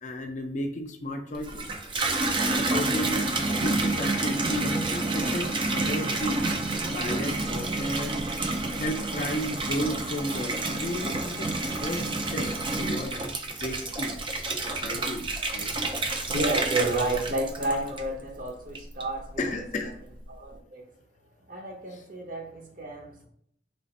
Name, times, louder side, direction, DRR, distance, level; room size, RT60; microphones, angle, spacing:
voice 1, 0.0-1.7 2.4-6.4 6.9-8.2 8.8-11.5 11.8-14.2 14.6-15.3 15.5-15.9 19.4-19.9 21.9-22.0, left 1 dB, 40° left, 0.4 m, -33 dB
Water tap faucet / Bathtub (filling or washing), 1.3-18.3 18.7-19.3, right 2 dB, 25° right, 0.3 m, -29 dB
voice 2, 16.3-19.5 20.3-20.9 21.5-23.3, right 2 dB, 45° right, 0.7 m, -31 dB
3.3 x 2.5 x 4.0 m
head